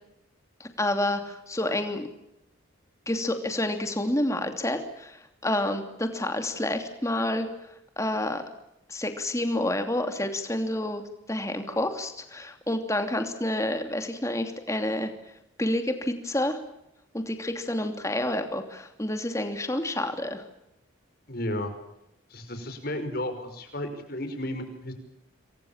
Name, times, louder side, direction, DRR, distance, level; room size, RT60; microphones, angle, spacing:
voice 1, 0.6-2.1 3.1-7.5 8.0-8.4 8.9-11.0 11.3-15.1 15.6-16.6 17.1-20.4, left 1 dB, 15° left, 6 dB, 2.9 m, -29 dB
voice 2, 21.3-21.7 22.3-24.9, left 1 dB, 45° left, 7 dB, 5.4 m, -33 dB
28.0 x 23.0 x 7.4 m, 0.83 s
head